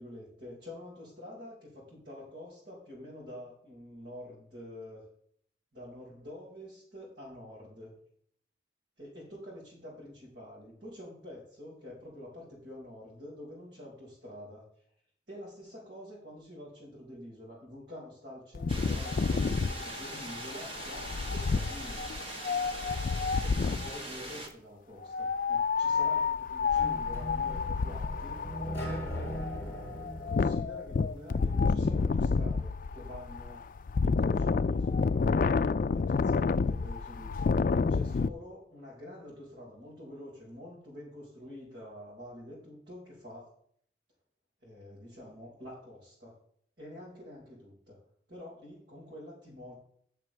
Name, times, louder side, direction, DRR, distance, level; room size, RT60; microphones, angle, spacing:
voice 1, 0.0-5.0 5.7-7.9 9.0-14.6 15.3-22.0 23.1-28.5 28.9-29.4 30.3-33.7 34.0-35.4 35.9-43.5 44.6-46.4 46.8-48.0 48.3-49.7, left 1 dB, 70° right, -7 dB, 5.1 m, -47 dB
Wind, 18.6-24.0 25.0-38.3, left 4 dB, 50° left, 0.3 m, -29 dB
sound 1, 18.7-24.5, right 1 dB, 30° right, 1.6 m, -41 dB
sound 2, 26.8-31.7, equal, 15° left, 4.7 m, -40 dB
14.5 x 6.7 x 3.4 m, 0.63 s
head